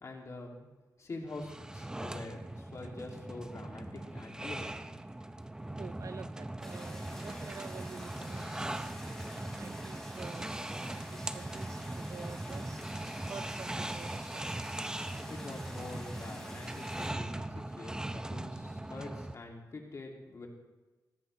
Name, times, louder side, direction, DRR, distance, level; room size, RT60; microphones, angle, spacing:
voice 1, 0.0-0.7 1.0-4.8 15.3-20.5, left 2 dB, 50° left, 0 dB, 2.7 m, -45 dB
sound 1, 1.3-19.3, right 1 dB, 10° right, 0.6 m, -40 dB
voice 2, 5.8-8.9 9.3-12.8 13.3-14.7, right 5 dB, 55° right, 12 dB, 0.7 m, -48 dB
sound 2, 6.6-17.1, equal, 5° left, 5.5 m, -49 dB
17.0 x 14.5 x 3.3 m, 1.2 s
cardioid pair, 90°, 7 cm